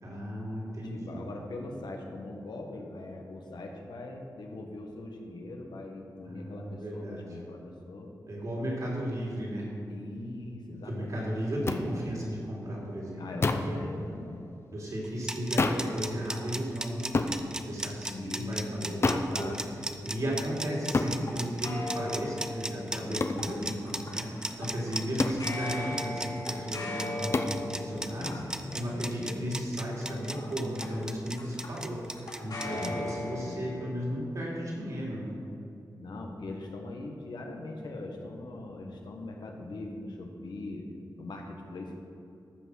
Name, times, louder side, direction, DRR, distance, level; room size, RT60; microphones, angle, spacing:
voice 1, 0.0-1.3 6.2-7.3 8.3-9.7 10.9-14.0 14.7-17.3 17.7-19.5 20.0-28.4 28.7-35.4, equal, 50° right, -4 dB, 3.2 m, -35 dB
voice 2, 0.9-8.1 9.9-11.3 13.2-14.4 18.1-19.8 23.0-23.7 28.2-29.5 32.6-33.6 36.0-40.9 41.2-42.0, left 2 dB, 80° left, 1 dB, 1.5 m, -41 dB
sound 1, 11.7-11.8 13.4-13.8 15.6-15.9 17.1-17.4 19.0-19.3 20.9-21.2 23.2-23.4 25.2-25.5 27.3-27.6, left 3 dB, 35° left, 0.6 m, -27 dB
sound 2, 15.0-32.9, right 1 dB, 10° right, 0.6 m, -36 dB
sound 3, 19.7-33.8, left 2 dB, 60° left, 3.3 m, -40 dB
14.5 x 6.0 x 6.4 m, 2.6 s
wide cardioid pair, 160°, 7 cm